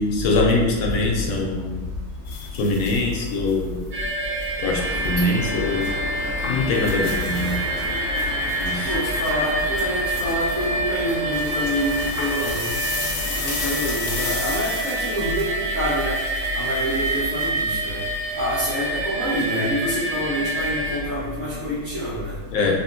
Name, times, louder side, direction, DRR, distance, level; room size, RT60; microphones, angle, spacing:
voice 1, 0.0-1.9 2.5-3.8 4.6-5.9 6.5-7.6 8.6-8.9 22.5-22.8, left 2 dB, 70° left, 0 dB, 1.0 m, -23 dB
sound 1, 2.3-3.5 4.3-5.2 5.7-5.9 6.4-18.6, left 4 dB, 90° left, 1.1 m, -35 dB
sound 2, 3.9-21.0, right 2 dB, 80° right, 1.7 m, -27 dB
sound 3, 4.8-14.6, left 1 dB, 45° left, 0.5 m, -35 dB
voice 2, 7.2-8.2 8.8-12.6 13.3-16.2 16.5-18.0 18.3-22.3, equal, 45° right, -15 dB, 1.5 m, -27 dB
3.5 x 2.5 x 2.6 m, 1.3 s
omnidirectional pair, 1.6 m